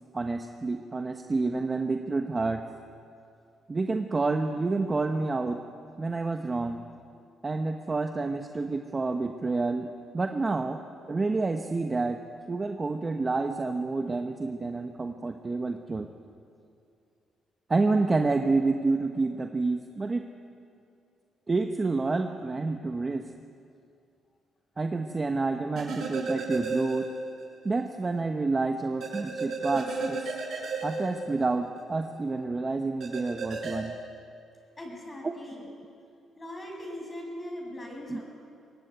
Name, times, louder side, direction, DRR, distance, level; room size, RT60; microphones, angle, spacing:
voice 1, 0.1-2.6 3.7-5.6 6.0-6.9 7.4-10.8 11.1-12.2 12.5-16.1 17.7-20.3 21.5-23.3 24.8-27.1 27.6-30.3 30.8-34.0 35.2-35.3 38.1-38.2, right 3 dB, 25° right, 5 dB, 1.2 m, -29 dB
voice 2, 24.8-25.3 34.8-35.7 36.4-38.2, left 1 dB, 25° left, 1 dB, 7.6 m, -41 dB
sound 1, 25.8-27.4 27.8-27.9 29.0-31.8 33.0-33.8, right 3 dB, 60° right, 7.2 m, -33 dB
23.5 x 19.5 x 9.4 m, 2.5 s
cardioid pair, 90°, 0 cm